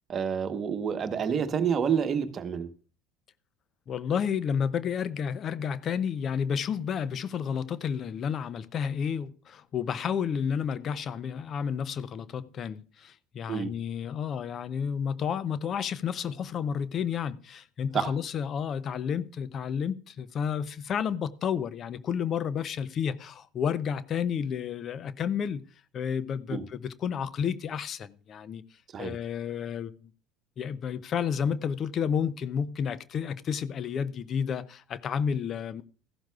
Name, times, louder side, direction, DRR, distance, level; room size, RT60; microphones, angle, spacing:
voice 1, 0.1-2.7 13.5-13.7 17.9-18.1 26.5-26.6 28.9-29.1, right 7 dB, 40° right, 1.1 m, -28 dB
voice 2, 3.9-25.6 25.9-28.6 29.0-29.9 30.6-35.8, left 7 dB, 45° left, 0.5 m, -31 dB
15.0 x 11.5 x 2.4 m
hypercardioid pair, 70°, 0 cm